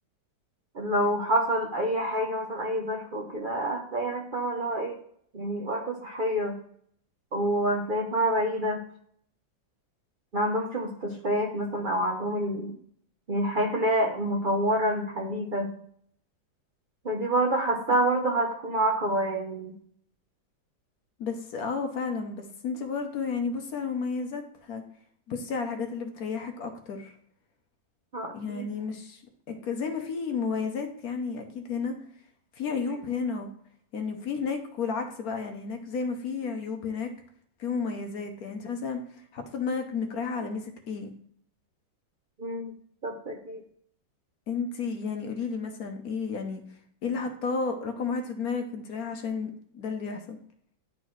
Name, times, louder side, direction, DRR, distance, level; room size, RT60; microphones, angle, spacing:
voice 1, 0.7-5.0 5.3-6.6 7.3-8.8 10.3-12.7 13.3-15.7 17.0-19.7 28.1-28.7 42.4-42.7 43.0-43.6, right 1 dB, 75° right, 1 dB, 0.4 m, -27 dB
voice 2, 21.2-24.8 25.3-27.2 28.3-29.2 29.5-31.9 32.5-33.5 33.9-37.1 37.6-41.1 44.5-46.6 47.0-50.4, left 5 dB, 60° left, 5 dB, 1.0 m, -32 dB
11.0 x 4.0 x 3.1 m, 0.64 s
omnidirectional pair, 2.1 m